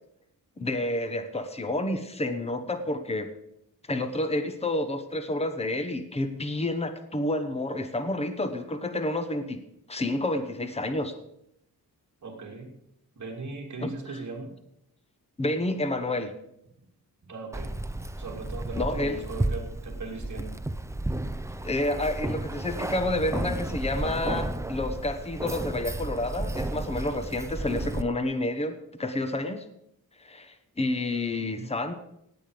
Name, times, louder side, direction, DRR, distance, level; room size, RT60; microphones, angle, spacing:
voice 1, 0.6-3.3 3.9-9.6 9.9-11.1 13.8-14.2 15.4-16.3 18.8-19.2 21.6-29.6 30.2-31.9, left 1 dB, 15° left, 9 dB, 1.1 m, -29 dB
voice 2, 12.2-12.7 13.2-14.5 17.2-17.7 18.2-20.5 31.3-31.7, right 3 dB, 50° right, 0 dB, 3.0 m, -38 dB
Keys jangling, 17.5-28.0, right 1 dB, 10° right, 0.5 m, -32 dB
17.5 x 8.8 x 5.1 m, 0.80 s
wide cardioid pair, 155°, 37 cm